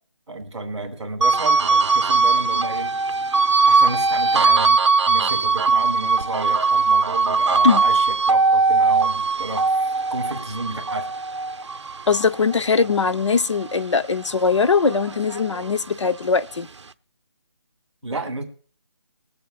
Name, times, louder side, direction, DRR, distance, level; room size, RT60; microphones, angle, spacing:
voice 1, 0.3-2.9 3.6-4.8 5.1-11.1 18.0-18.4, right 2 dB, 5° right, 1.0 m, -31 dB
sound 1, 1.2-13.8 14.2-15.9, right 4 dB, 75° right, 0.6 m, -20 dB
voice 2, 12.1-16.7, left 5 dB, 85° left, 0.7 m, -20 dB
21.0 x 7.9 x 2.2 m
hypercardioid pair, 180°, 15 cm